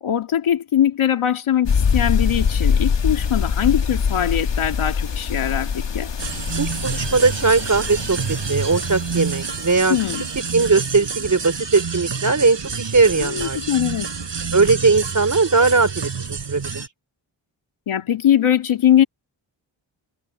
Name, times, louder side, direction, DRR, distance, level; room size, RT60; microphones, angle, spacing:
voice 1, 0.0-6.1 9.9-10.3 13.2-14.1 17.9-19.0, left 10 dB, 90° left, 2.2 m, -21 dB
sound 1, 1.7-10.1, left 6 dB, 65° left, 1.9 m, -24 dB
sound 2, 6.2-16.9, right 5 dB, 65° right, 6.1 m, -28 dB
voice 2, 6.6-8.2 8.5-10.0 10.5-13.6 14.5-16.8, right 4 dB, 40° right, 3.9 m, -19 dB
cardioid pair, 55°, 47 cm